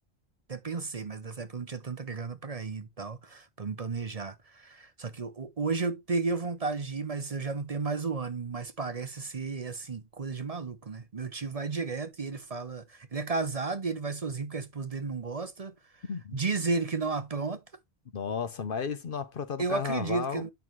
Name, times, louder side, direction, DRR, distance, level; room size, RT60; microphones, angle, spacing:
voice 1, 0.5-15.8 16.3-17.6 19.6-20.5, right 4 dB, 40° right, 0.7 m, -33 dB
voice 2, 16.1-16.4 18.1-20.5, left 6 dB, 55° left, 0.9 m, -33 dB
9.3 x 5.8 x 3.1 m
omnidirectional pair, 1.2 m